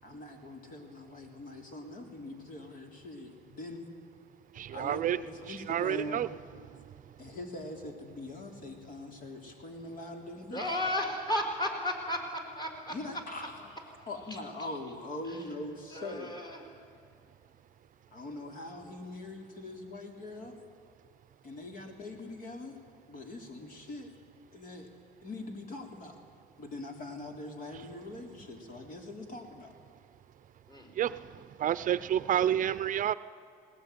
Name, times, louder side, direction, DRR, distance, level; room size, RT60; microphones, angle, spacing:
voice 1, 0.0-3.9 4.7-6.3 7.2-10.6 12.9-13.5 14.0-16.3 18.1-20.6 21.4-22.8 23.1-24.1 24.5-24.9 25.2-26.2 26.6-29.7, left 2 dB, 55° left, 3.8 m, -42 dB
voice 2, 4.8-5.2 5.5-6.3 31.0-31.2 31.6-33.1, right 10 dB, 50° right, 0.6 m, -29 dB
voice 3, 10.5-12.9 14.3-14.4 15.9-16.6 30.7-31.2, left 1 dB, 25° left, 5.0 m, -34 dB
20.0 x 19.5 x 9.4 m
cardioid pair, 110°, 17 cm